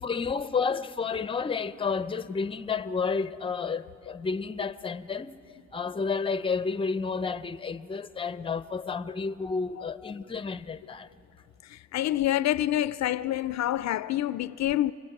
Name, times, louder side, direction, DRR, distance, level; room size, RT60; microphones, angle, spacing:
voice 1, 0.0-5.4 5.7-11.1, left 5 dB, 20° left, 0.6 m, -31 dB
voice 2, 11.6-14.9, left 13 dB, 65° left, 0.4 m, -27 dB
29.0 x 22.0 x 6.0 m
cardioid pair, 90°, 30 cm